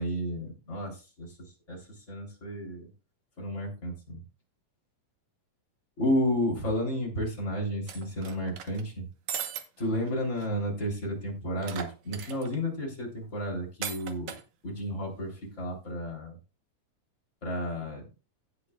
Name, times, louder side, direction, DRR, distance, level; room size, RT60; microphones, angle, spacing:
voice 1, 0.0-1.3 1.7-2.9 3.4-4.2 6.0-9.1 9.8-14.3 14.6-16.4 17.4-18.1, equal, 20° left, -1 dB, 3.2 m, -32 dB
sound 1, 7.9-8.8 9.3-9.6 10.1-10.2 10.4-10.5 11.6-12.6 13.8-14.4, right 8 dB, 65° right, 2.0 m, -37 dB
17.5 x 6.1 x 2.3 m, 0.30 s
omnidirectional pair, 4.1 m